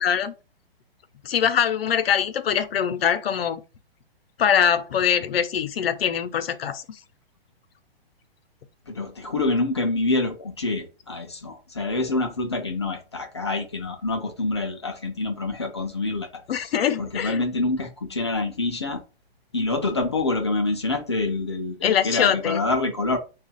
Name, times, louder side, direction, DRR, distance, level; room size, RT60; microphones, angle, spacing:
voice 1, 0.0-0.3 1.2-3.6 4.4-6.8 16.5-17.4 21.8-22.6, left 8 dB, 75° left, 0.7 m, -23 dB
voice 2, 8.9-16.4 17.0-19.0 19.5-23.2, left 2 dB, 30° left, 0.4 m, -26 dB
3.6 x 2.3 x 4.0 m
hypercardioid pair, 175°, 30 cm